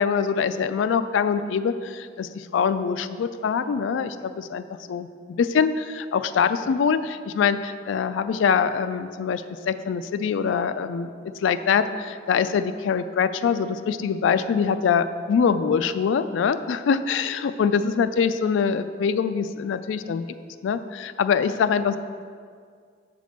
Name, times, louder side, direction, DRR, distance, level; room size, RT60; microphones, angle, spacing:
voice 1, 0.0-20.2 20.6-22.0, left 6 dB, 80° left, 12 dB, 0.3 m, -24 dB
7.4 x 3.4 x 6.4 m, 2.1 s
head